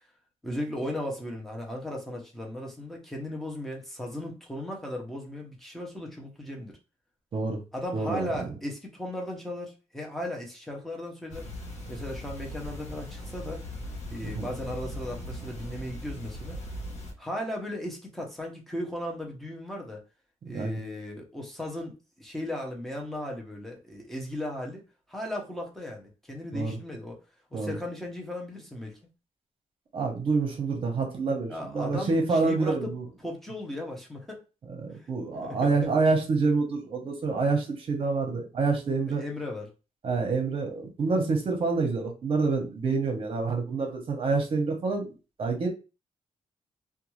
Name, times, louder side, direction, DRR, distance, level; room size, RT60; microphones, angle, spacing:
voice 1, 0.4-6.8 7.7-11.5 11.9-13.6 14.1-16.6 17.2-20.0 20.5-24.8 25.1-27.2 27.5-29.0 31.5-33.0 33.2-34.4 35.0-35.1 35.4-35.9 39.2-39.7, left 1 dB, ahead, 0.7 m, -36 dB
voice 2, 7.9-8.5 14.2-14.5 20.5-20.8 26.5-26.8 27.5-27.7 29.9-33.0 34.7-39.2 40.0-45.7, right 4 dB, 45° right, 0.8 m, -27 dB
sound 1, 11.3-17.1, equal, 60° left, 0.8 m, -39 dB
2.5 x 2.3 x 3.0 m
wide cardioid pair, 175°, 12 cm